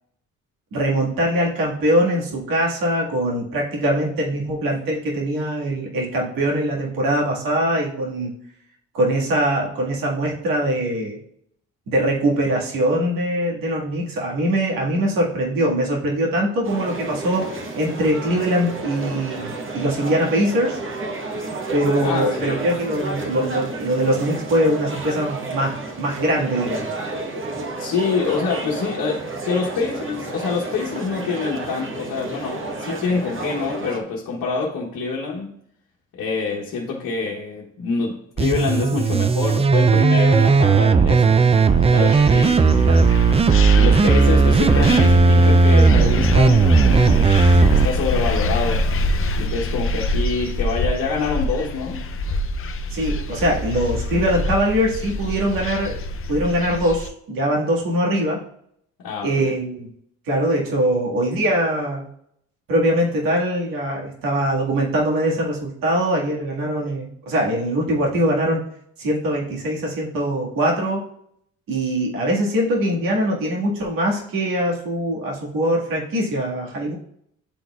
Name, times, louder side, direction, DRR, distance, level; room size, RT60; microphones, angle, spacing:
voice 1, 0.7-8.3 8.9-11.2 11.9-20.8 21.7-26.9 42.8-43.1 52.9-56.0 56.3-58.4 59.2-59.9 60.3-62.0 62.7-68.7 69.0-71.0 71.7-76.9, right 1 dB, 70° right, 1.9 m, -22 dB
sound 1, 16.6-34.0, right 2 dB, 35° right, 1.2 m, -31 dB
voice 2, 22.0-22.7 27.8-35.6 36.1-41.5 41.9-42.9 43.8-48.9 49.4-52.0 59.0-59.5, left 5 dB, 70° left, 1.1 m, -26 dB
sound 2, 38.4-47.9, right 4 dB, 20° right, 0.3 m, -15 dB
sound 3, 41.4-57.1, left 2 dB, 40° left, 0.6 m, -25 dB
10.0 x 4.0 x 2.4 m
supercardioid pair, 55°, 35 cm